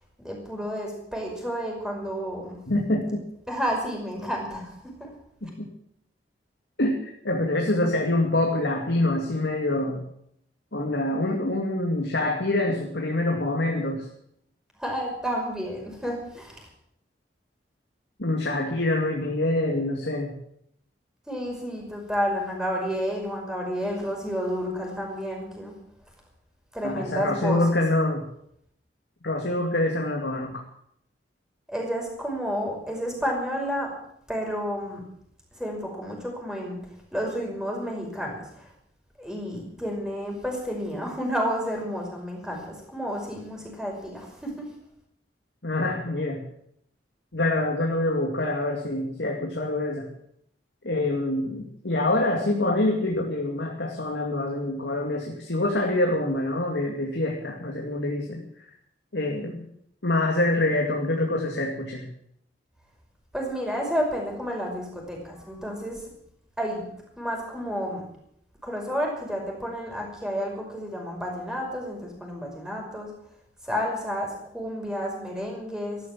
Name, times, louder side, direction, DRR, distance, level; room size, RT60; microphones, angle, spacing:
voice 1, 0.2-2.6 3.5-4.7 5.0-5.1 14.8-16.7 21.3-25.8 26.7-27.8 31.7-33.9 34.3-35.0 35.6-36.8 37.1-38.7 39.2-44.6 63.3-66.0 66.6-66.9 67.2-68.0 68.6-73.1 73.6-76.0, equal, 5° right, -1 dB, 5.6 m, -31 dB
voice 2, 2.7-3.2 5.4-5.5 6.8-10.0 10.7-14.1 18.2-20.4 26.8-28.3 29.2-30.6 45.6-46.5 47.3-50.1 50.8-58.7 59.1-59.7 60.0-62.1, left 2 dB, 85° left, 0 dB, 2.4 m, -26 dB
14.5 x 12.0 x 7.5 m, 0.74 s
head